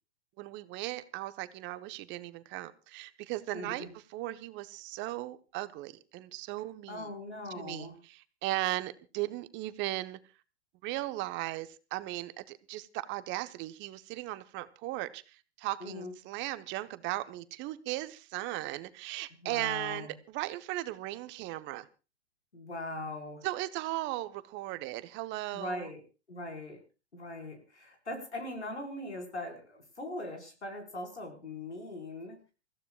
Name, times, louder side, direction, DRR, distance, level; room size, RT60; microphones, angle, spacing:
voice 1, 0.4-7.1 7.5-10.2 10.8-21.9 23.4-25.9, right 17 dB, 35° right, 1.0 m, -37 dB
voice 2, 3.5-3.9 6.9-8.0 15.8-16.1 19.4-20.1 22.5-23.4 25.5-26.0 26.3-26.8 27.1-32.4, left 2 dB, 85° left, 4.7 m, -40 dB
28.0 x 15.0 x 2.3 m
figure-of-eight pair, 100°, 33 cm